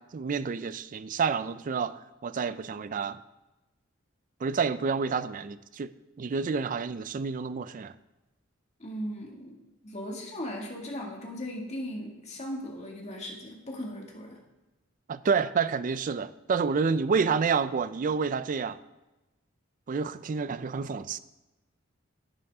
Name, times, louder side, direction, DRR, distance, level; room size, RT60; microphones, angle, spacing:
voice 1, 0.0-3.2 4.4-5.9 6.2-7.9 15.1-18.8 19.9-21.2, right 5 dB, 40° right, 0.4 m, -29 dB
voice 2, 8.8-9.5 9.8-14.4, equal, 35° left, 2.1 m, -37 dB
11.0 x 9.9 x 3.6 m
head